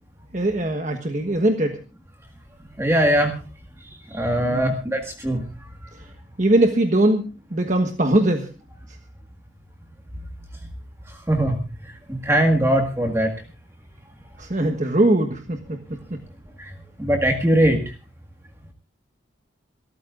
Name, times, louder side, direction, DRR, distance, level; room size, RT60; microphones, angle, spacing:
voice 1, 0.3-1.8 4.5-4.7 6.0-6.1 6.4-8.5 14.4-15.8, right 1 dB, 40° right, 4 dB, 1.4 m, -21 dB
voice 2, 2.8-3.3 4.1-5.4 11.3-11.6 12.1-13.3 16.6-16.7 17.0-17.8, right 1 dB, 15° right, 2 dB, 1.8 m, -20 dB
28.0 x 14.0 x 2.5 m, 0.33 s
head